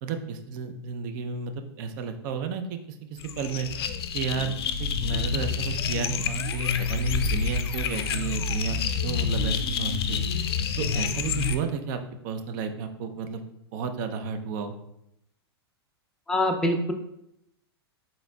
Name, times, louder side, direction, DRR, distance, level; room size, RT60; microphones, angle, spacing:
voice 1, 0.0-2.8 3.1-3.7 4.1-10.2 10.8-12.0 12.2-13.4 13.7-14.7, right 6 dB, 45° right, 7 dB, 0.5 m, -32 dB
sound 1, 3.2-11.6, left 5 dB, 65° left, 0.4 m, -28 dB
voice 2, 16.3-16.9, left 1 dB, 5° left, 3 dB, 0.4 m, -24 dB
3.9 x 3.9 x 2.3 m, 0.80 s
hypercardioid pair, 110°, 14 cm